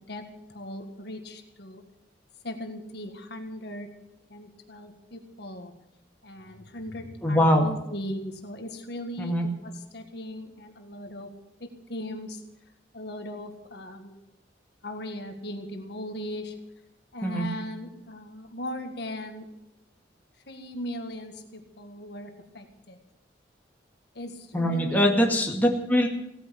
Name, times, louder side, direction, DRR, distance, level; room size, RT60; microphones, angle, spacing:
voice 1, 0.1-1.8 2.4-3.9 4.3-5.7 6.2-9.4 9.6-11.3 11.6-12.4 12.9-14.1 14.8-16.5 17.1-19.4 20.5-23.0 24.1-25.2, left 1 dB, 60° left, 5 dB, 1.7 m, -38 dB
voice 2, 7.2-7.7 9.2-9.5 17.2-17.5 24.5-26.1, equal, 10° left, 0 dB, 2.1 m, -22 dB
17.0 x 9.6 x 8.4 m, 0.85 s
head